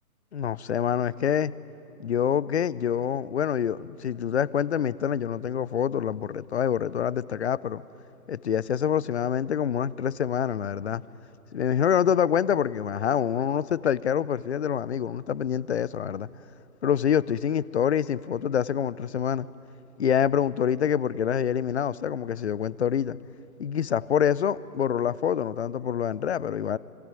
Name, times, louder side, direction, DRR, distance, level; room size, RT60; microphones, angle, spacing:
voice 1, 0.3-1.5 2.0-7.8 8.3-11.0 11.5-16.3 16.8-19.5 20.0-23.2 23.6-26.8, left 8 dB, 45° left, 0.6 m, -26 dB
26.5 x 24.0 x 9.1 m
figure-of-eight pair, 145°, 47 cm